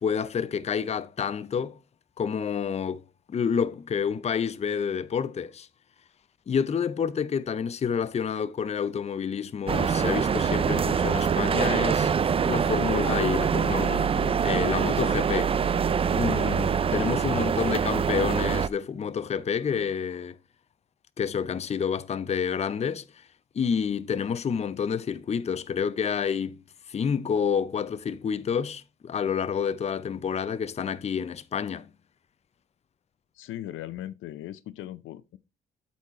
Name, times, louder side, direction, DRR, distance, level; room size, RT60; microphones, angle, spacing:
voice 1, 0.0-1.8 2.2-3.0 3.3-5.7 6.5-12.1 12.5-15.6 16.1-20.4 21.2-23.0 23.5-26.6 26.9-31.9, left 7 dB, 35° left, 0.5 m, -29 dB
sound 1, 9.7-18.7, right 6 dB, 30° right, 0.4 m, -24 dB
voice 2, 33.3-35.4, left 13 dB, 80° left, 0.6 m, -38 dB
8.3 x 4.2 x 4.2 m
cardioid pair, 90°, 20 cm